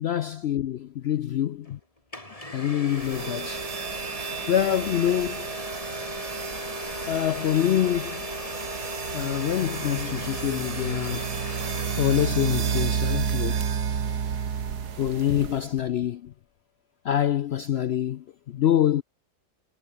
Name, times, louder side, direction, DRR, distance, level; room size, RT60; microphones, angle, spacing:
voice 1, 0.0-0.8 1.1-1.8 2.5-3.6 4.5-5.5 7.1-8.2 9.1-11.3 12.0-13.6 15.0-16.3 17.0-19.0, left 11 dB, 75° left, 0.5 m, -25 dB
Domestic sounds home sounds, 1.6-1.7 2.1-13.2, left 1 dB, 20° left, 5.1 m, -37 dB
sound 1, 2.9-15.8, right 7 dB, 80° right, 2.1 m, -31 dB
omnidirectional pair, 1.7 m